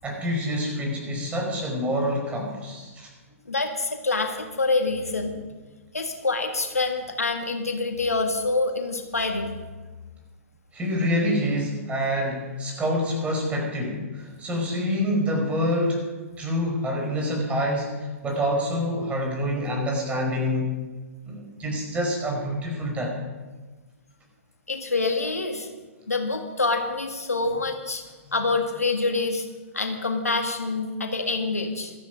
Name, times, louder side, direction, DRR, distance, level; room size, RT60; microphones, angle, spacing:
voice 1, 0.0-3.1 10.7-16.0 16.4-20.7 21.3-23.1, equal, 15° right, -1 dB, 5.2 m, -26 dB
voice 2, 3.5-5.5 5.9-9.6 24.7-25.7 26.1-29.4 29.7-31.9, left 3 dB, 90° left, 5 dB, 1.8 m, -26 dB
15.0 x 13.5 x 5.2 m, 1.3 s
figure-of-eight pair, 120°, 8 cm